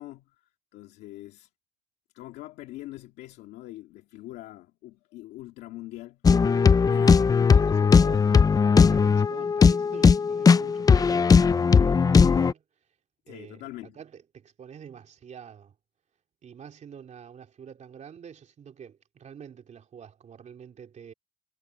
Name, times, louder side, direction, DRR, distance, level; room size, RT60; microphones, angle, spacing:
voice 1, 0.0-1.5 2.1-6.2 6.9-7.3 13.3-14.0, left 16 dB, 90° left, 1.9 m, -43 dB
sound 1, 6.2-12.5, left 5 dB, 20° left, 0.4 m, -18 dB
voice 2, 7.3-12.6 13.3-13.7 13.9-15.7 16.4-21.1, right 7 dB, 45° right, 3.0 m, -46 dB
cardioid pair, 110°, 17 cm